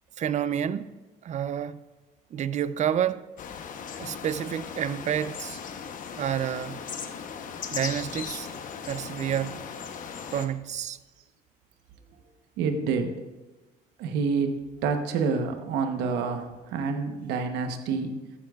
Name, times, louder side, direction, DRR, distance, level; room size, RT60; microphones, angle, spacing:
voice 1, 0.2-1.0 1.2-1.8 2.3-3.3 4.0-5.6 6.2-6.8 7.7-8.5 8.9-9.7 10.3-11.0, right 9 dB, 45° right, 0.5 m, -29 dB
sound 1, 3.4-10.5, left 7 dB, 50° left, 0.9 m, -38 dB
voice 2, 12.6-13.1 14.0-18.1, right 5 dB, 90° right, 1.0 m, -28 dB
14.0 x 9.9 x 2.4 m
cardioid pair, 110°, 17 cm